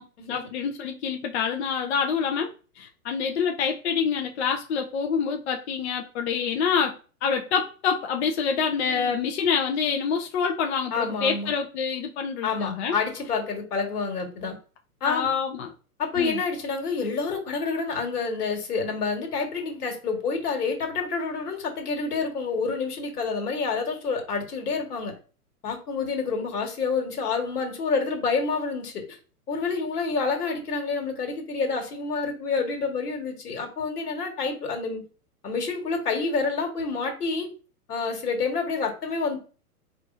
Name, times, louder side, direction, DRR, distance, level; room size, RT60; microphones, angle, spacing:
voice 1, 0.3-13.0 15.0-15.7 16.2-16.4, left 6 dB, 50° left, 0.6 m, -27 dB
voice 2, 8.8-9.1 10.9-11.5 12.4-14.6 15.0-15.3 16.0-25.1 25.6-29.2 29.5-35.0 35.4-37.5 37.9-39.4, left 4 dB, 80° left, 1.5 m, -28 dB
4.6 x 2.5 x 2.5 m
hypercardioid pair, 130°, 46 cm